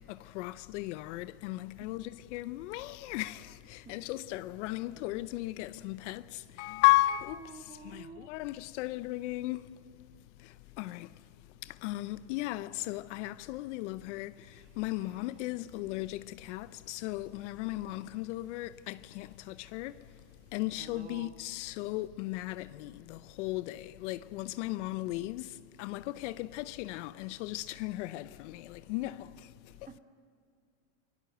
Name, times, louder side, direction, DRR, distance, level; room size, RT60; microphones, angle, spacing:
voice 1, 0.0-9.9 10.4-20.2 20.5-29.9, left 17 dB, 60° left, 0.7 m, -35 dB
sound 1, 1.7-7.6, left 7 dB, 45° left, 2.5 m, -62 dB
voice 2, 7.4-8.3 20.8-21.3 29.9-30.0, right 5 dB, 20° right, 1.6 m, -49 dB
sound 2, 14.5-20.8, right 6 dB, 55° right, 4.3 m, -65 dB
28.5 x 19.0 x 8.0 m
supercardioid pair, 140°, 40 cm